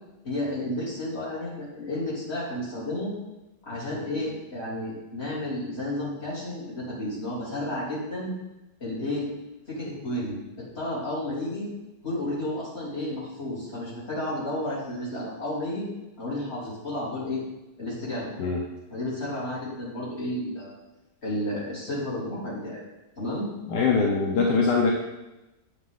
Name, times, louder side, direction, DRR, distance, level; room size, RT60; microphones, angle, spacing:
voice 1, 0.2-3.1 3.6-8.3 8.8-9.3 9.7-11.7 12.0-15.9 16.2-17.4 17.8-18.3 18.9-20.7 21.2-22.8 23.2-23.5, left 1 dB, 40° left, -7 dB, 3.6 m, -32 dB
voice 2, 23.7-24.9, left 4 dB, 75° left, -1 dB, 1.5 m, -22 dB
8.4 x 8.4 x 4.0 m, 0.98 s
omnidirectional pair, 1.8 m